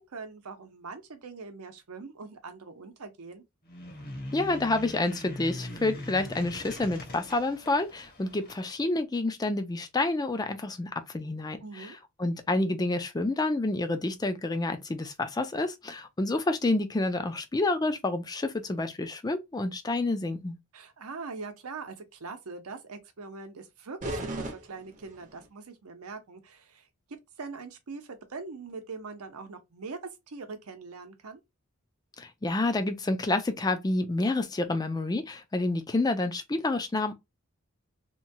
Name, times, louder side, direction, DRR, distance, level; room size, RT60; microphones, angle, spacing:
voice 1, 0.0-3.4 11.6-12.0 20.7-26.9 27.4-30.0 30.3-31.4, right 4 dB, 75° right, 0.7 m, -42 dB
sound 1, 3.6-8.6, left 1 dB, 40° left, 0.9 m, -42 dB
voice 2, 4.3-11.9 12.2-20.5 32.2-37.1, left 2 dB, 15° left, 0.4 m, -29 dB
sound 2, 24.0-25.5, right 1 dB, 35° right, 0.6 m, -37 dB
2.9 x 2.2 x 2.6 m
head